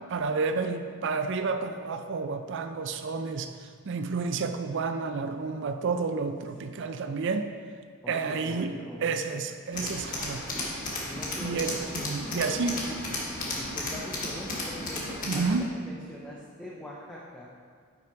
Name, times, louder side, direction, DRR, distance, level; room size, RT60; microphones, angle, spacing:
voice 1, 0.1-3.5 3.9-7.5 8.1-8.8 9.0-10.4 11.4-11.8 12.0-12.8 15.3-15.6, right 4 dB, 55° right, 8 dB, 0.4 m, -30 dB
voice 2, 8.0-9.1 11.0-12.1 12.7-13.0 13.5-17.5, left 1 dB, 5° left, -5 dB, 0.6 m, -43 dB
Tools, 9.7-15.6, left 2 dB, 40° left, 1.3 m, -34 dB
6.0 x 5.3 x 4.5 m, 2.1 s
head